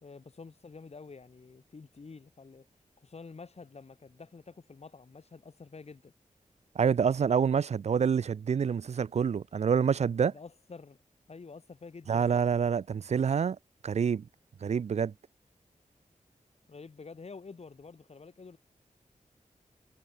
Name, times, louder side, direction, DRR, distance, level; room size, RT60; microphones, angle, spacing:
voice 1, 0.0-2.7 3.0-6.1 10.2-11.0 11.3-12.3 16.7-18.6, left 4 dB, 50° left, 2.2 m, -48 dB
voice 2, 6.8-10.3 12.1-13.6 13.8-14.3 14.6-15.1, right 7 dB, 55° right, 0.4 m, -27 dB
wide cardioid pair, 115°, 14 cm